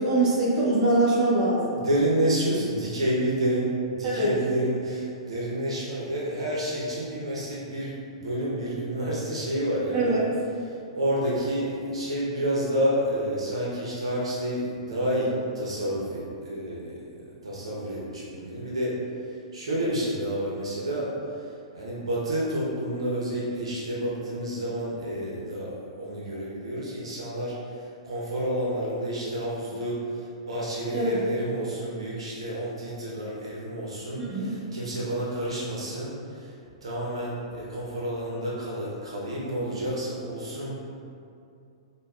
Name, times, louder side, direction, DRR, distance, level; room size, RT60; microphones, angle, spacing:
voice 1, 0.0-1.8 4.0-4.3 9.9-10.2 30.9-31.2 34.2-34.5, right 2 dB, 30° right, -8 dB, 1.0 m, -23 dB
voice 2, 1.7-10.2 10.6-19.0 19.3-36.5 36.8-40.8, right 1 dB, 80° right, -6 dB, 0.8 m, -29 dB
5.1 x 2.3 x 2.4 m, 2.5 s
hypercardioid pair, 115°, 3 cm